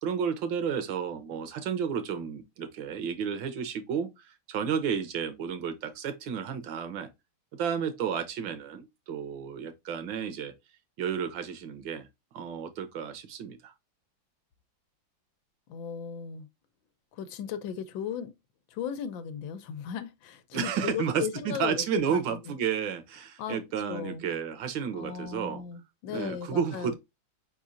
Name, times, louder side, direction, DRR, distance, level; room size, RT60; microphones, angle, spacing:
voice 1, 0.0-7.1 7.5-10.5 11.0-12.1 12.3-13.7 20.5-25.6 26.1-26.9, right 7 dB, 75° right, 1.6 m, -32 dB
voice 2, 15.7-16.5 17.1-18.3 18.7-22.5 23.4-23.6 23.9-24.2 24.9-26.9, left 8 dB, 80° left, 1.4 m, -36 dB
4.9 x 4.3 x 2.5 m
omnidirectional pair, 2.1 m